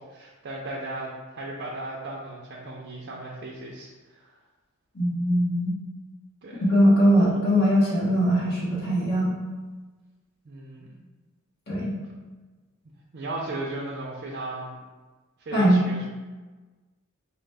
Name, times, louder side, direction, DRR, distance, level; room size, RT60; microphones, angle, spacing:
voice 1, 0.0-4.3 6.4-6.7 7.2-7.4 10.4-10.9 13.1-14.8 15.4-16.1, right 2 dB, 50° right, -3 dB, 0.5 m, -36 dB
voice 2, 4.9-5.7 6.7-9.3 11.7-11.9 15.5-15.8, equal, 50° left, -6 dB, 1.1 m, -21 dB
4.9 x 2.1 x 3.3 m, 1.3 s
head